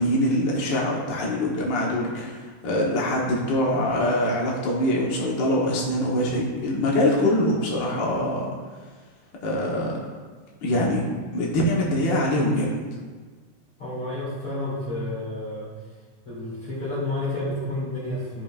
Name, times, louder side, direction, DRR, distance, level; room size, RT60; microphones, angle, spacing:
voice 1, 0.0-8.5 9.4-10.0 10.6-12.8, left 1 dB, 70° left, -3 dB, 1.1 m, -24 dB
voice 2, 13.8-15.7 16.2-18.4, left 1 dB, 45° left, -9 dB, 3.2 m, -30 dB
15.5 x 5.5 x 2.5 m, 1.4 s
omnidirectional pair, 3.8 m